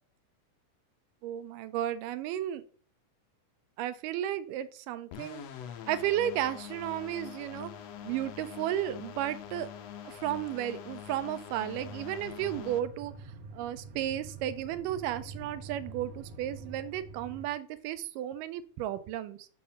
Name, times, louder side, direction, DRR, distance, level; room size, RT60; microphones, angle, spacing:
voice 1, 1.2-2.6 3.8-5.4 5.9-7.7 8.0-9.7 10.1-13.1 13.5-19.5, right 12 dB, 90° right, 13 dB, 2.3 m, -33 dB
sound 1, 5.1-12.8, left 9 dB, 80° left, 1.5 m, -44 dB
sound 2, 11.7-17.5, right 3 dB, 65° right, 1.8 m, -46 dB
7.1 x 3.5 x 6.2 m, 0.43 s
omnidirectional pair, 3.7 m